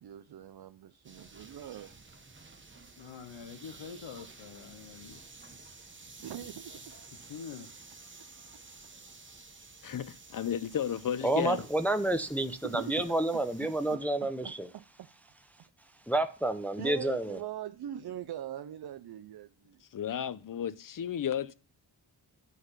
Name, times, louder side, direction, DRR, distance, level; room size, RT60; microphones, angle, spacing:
voice 1, 0.0-2.1 6.2-6.9 12.6-15.1 16.8-19.8, right 11 dB, 60° right, 0.5 m, -43 dB
sound 1, 1.0-14.0, right 3 dB, 25° right, 1.0 m, -52 dB
voice 2, 3.0-5.2 7.2-7.7, left 6 dB, 85° left, 0.8 m, -45 dB
voice 3, 9.8-11.6 19.9-21.5, left 9 dB, 50° left, 0.6 m, -33 dB
voice 4, 11.2-14.7 16.1-17.4, right 1 dB, 5° left, 0.6 m, -29 dB
11.0 x 4.0 x 5.5 m
wide cardioid pair, 80°, 43 cm